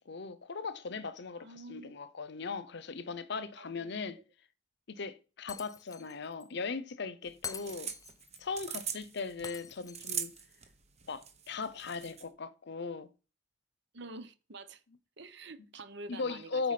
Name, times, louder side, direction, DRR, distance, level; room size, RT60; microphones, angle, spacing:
voice 1, 0.0-4.2 4.9-7.9 8.4-10.3 11.1-13.1 16.1-16.7, left 4 dB, 65° left, 0.7 m, -38 dB
voice 2, 1.4-2.0 3.6-4.1 7.6-7.8 13.9-14.8 15.2-16.7, right 2 dB, 65° right, 0.9 m, -48 dB
Shatter, 5.5-6.1 6.4-6.5 7.4-8.4 9.4-10.4, left 6 dB, 20° left, 0.4 m, -45 dB
sound 1, 7.3-12.3, right 7 dB, 35° right, 1.1 m, -41 dB
8.5 x 4.6 x 5.8 m
head